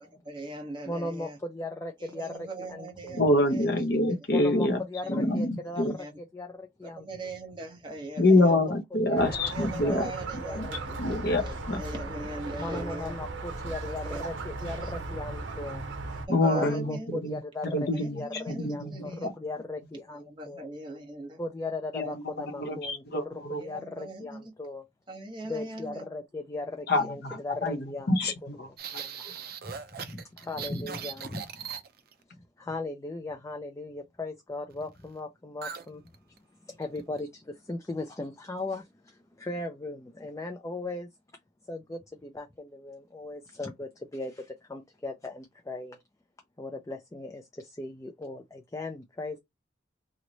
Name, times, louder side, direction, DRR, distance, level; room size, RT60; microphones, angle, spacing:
voice 1, 0.2-1.4 2.0-3.2 3.5-3.7 5.0-5.4 5.7-6.1 6.8-8.6 9.5-11.0 11.5-13.1 13.8-14.3 14.6-14.9 16.0-17.2 17.9-19.3 19.9-21.4 22.0-22.1 22.7-22.8 23.6-24.5 25.1-26.0 26.9-27.4, right 2 dB, 25° right, 0.9 m, -41 dB
voice 2, 0.9-3.2 4.3-5.8 6.3-7.1 8.3-8.8 9.1-9.2 9.8-9.9 10.4-11.6 12.6-15.8 16.5-17.9 18.1-20.7 21.4-24.8 25.5-28.1 28.7-31.7 32.6-36.0 36.6-41.1 41.7-46.0 46.6-49.4, left 2 dB, 15° left, 0.3 m, -38 dB
voice 3, 3.1-4.8 5.1-6.0 8.2-10.1 10.5-10.7 11.0-11.8 16.3-19.3 21.9-23.6 26.9-28.7 29.2-29.3, left 1 dB, 55° left, 0.8 m, -26 dB
Squeak, 9.2-16.3, right 2 dB, 80° right, 0.8 m, -37 dB
sound 1, 28.8-32.2 35.6-35.9 36.1-36.4 36.8-37.2, right 7 dB, 50° right, 0.5 m, -39 dB
3.0 x 2.1 x 3.9 m
head